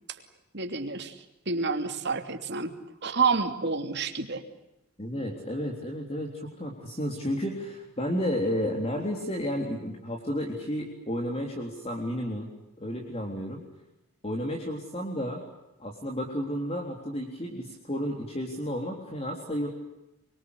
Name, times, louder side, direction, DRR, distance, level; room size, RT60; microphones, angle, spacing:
voice 1, 0.5-1.2 1.5-2.7 3.0-4.4, right 4 dB, 50° right, 6 dB, 2.9 m, -28 dB
voice 2, 5.0-12.5 12.8-13.6 14.2-15.4 15.8-19.7, equal, 30° left, 1 dB, 3.7 m, -32 dB
26.0 x 23.5 x 8.2 m, 0.93 s
head